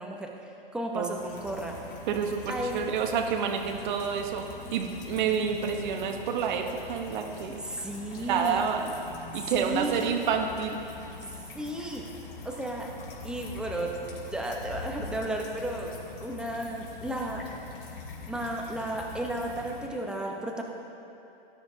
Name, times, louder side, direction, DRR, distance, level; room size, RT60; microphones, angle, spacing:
voice 1, 0.0-1.8 2.5-2.8 7.7-8.6 9.4-10.1 11.2-12.1 12.4-12.9 13.2-13.9 14.3-15.9 16.2-17.5 18.3-20.6, right 1 dB, 5° right, 0 dB, 1.0 m, -34 dB
sound 1, 1.1-19.9, left 3 dB, 65° left, 2.7 m, -43 dB
voice 2, 2.1-7.6 8.2-8.9 9.3-10.8, right 6 dB, 55° right, 4 dB, 1.3 m, -29 dB
18.0 x 10.0 x 2.9 m, 2.8 s
hypercardioid pair, 125°, 29 cm